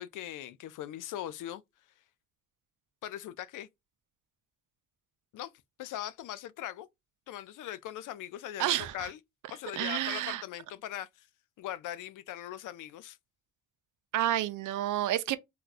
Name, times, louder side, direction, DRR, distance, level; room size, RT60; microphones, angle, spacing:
voice 1, 0.0-1.6 3.0-3.7 5.3-5.5 5.8-6.9 7.3-9.2 9.5-11.3 11.6-13.2, left 12 dB, 80° left, 0.5 m, -40 dB
voice 2, 8.6-9.1 9.8-10.4 14.1-15.4, right 13 dB, 85° right, 0.5 m, -30 dB
3.3 x 2.3 x 2.4 m
cardioid pair, 75°, 30 cm